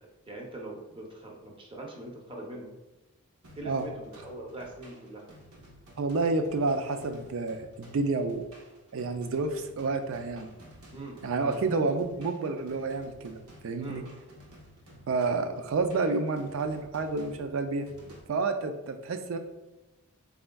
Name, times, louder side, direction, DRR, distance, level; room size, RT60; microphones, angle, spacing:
voice 1, 0.0-2.7 3.5-5.2 10.9-11.5 13.8-14.0, right 1 dB, 25° right, -1 dB, 0.6 m, -42 dB
sound 1, 3.4-18.2, equal, 80° right, 0.9 m, -54 dB
voice 2, 6.0-8.5 8.9-10.6 11.2-14.0 15.1-17.9 18.3-19.4, right 3 dB, 60° right, 8 dB, 0.4 m, -29 dB
4.2 x 3.5 x 2.2 m, 1.1 s
head